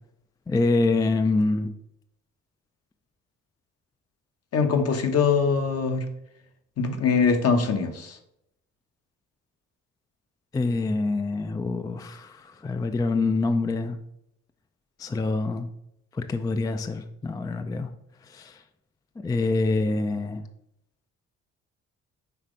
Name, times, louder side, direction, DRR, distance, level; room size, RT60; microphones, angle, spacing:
voice 1, 0.5-1.7 10.5-14.0 15.0-15.7 16.1-17.9 18.3-18.6 19.2-20.4, left 3 dB, 15° left, 9 dB, 0.3 m, -26 dB
voice 2, 4.5-6.0 6.8-8.2, left 5 dB, 55° left, 5 dB, 1.0 m, -23 dB
5.8 x 3.2 x 5.0 m, 0.79 s
cardioid pair, 90°, 30 cm